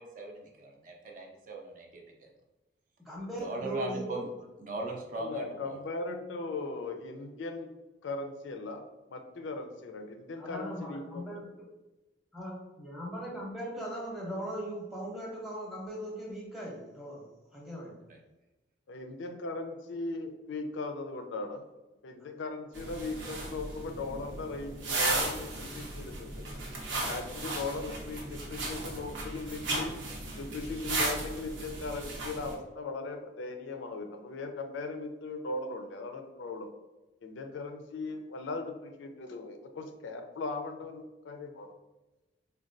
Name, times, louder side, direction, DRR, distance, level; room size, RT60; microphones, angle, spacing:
voice 1, 0.0-2.3 3.4-4.3 4.6-5.8 18.1-18.2, right 2 dB, 45° right, 1 dB, 0.5 m, -39 dB
voice 2, 3.0-4.2 10.4-11.5 12.3-17.3 17.5-17.9 22.2-22.3, equal, ahead, -4 dB, 0.7 m, -39 dB
voice 3, 5.1-7.7 8.0-8.8 9.1-11.4 18.9-21.6 22.0-26.5 27.0-29.9 30.4-36.7 37.2-41.7, left 3 dB, 90° left, 6 dB, 0.4 m, -38 dB
sound 1, 22.7-32.5, right 2 dB, 90° right, 0.7 m, -35 dB
4.0 x 2.2 x 2.5 m, 1.1 s
head